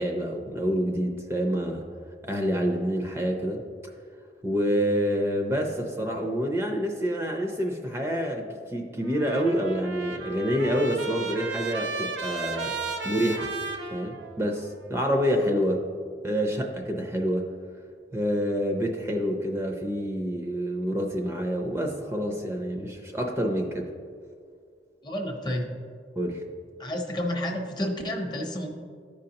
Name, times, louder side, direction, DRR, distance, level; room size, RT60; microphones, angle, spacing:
voice 1, 0.0-1.8 2.3-3.6 4.4-12.8 13.0-13.5 13.9-15.8 16.2-17.5 18.1-23.9 26.2-26.4, equal, 15° right, 2 dB, 0.5 m, -27 dB
Trumpet, 9.1-14.7, right 4 dB, 80° right, 0.7 m, -35 dB
voice 2, 25.0-25.7 26.8-28.7, left 1 dB, 25° left, 2 dB, 0.8 m, -30 dB
13.0 x 5.2 x 2.9 m, 2.1 s
head